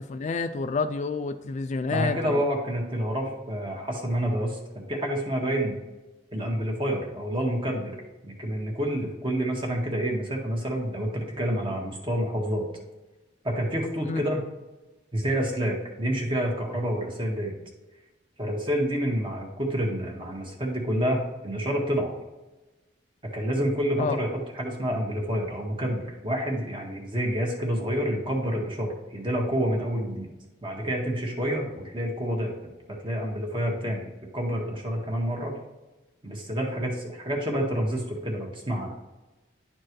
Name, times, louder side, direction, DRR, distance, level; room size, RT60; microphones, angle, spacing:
voice 1, 0.0-2.4 14.1-14.2 24.0-24.2, left 4 dB, 40° left, 0.3 m, -29 dB
voice 2, 1.9-5.8 6.3-8.0 8.2-12.7 13.4-14.4 15.1-17.6 18.4-22.1 23.3-30.3 30.6-32.5 33.0-34.1 34.3-35.6 36.2-38.9, equal, 30° right, 1.6 m, -28 dB
10.5 x 4.4 x 3.1 m
head